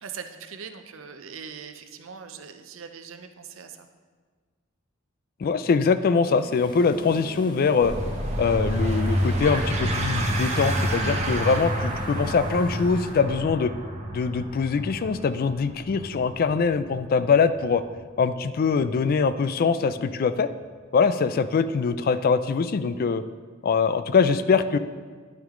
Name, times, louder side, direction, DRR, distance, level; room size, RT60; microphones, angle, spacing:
voice 1, 0.0-3.9, right 6 dB, 70° right, 7 dB, 0.6 m, -41 dB
voice 2, 5.4-7.9 8.4-13.7 14.1-17.8 18.2-20.5 20.9-23.2 23.6-24.8, left 5 dB, 45° left, 13 dB, 0.3 m, -23 dB
sound 1, 6.4-13.2, left 1 dB, 20° left, 0.8 m, -43 dB
sound 2, 7.8-18.9, right 1 dB, 35° right, 1.1 m, -29 dB
10.5 x 6.0 x 3.7 m, 1.5 s
head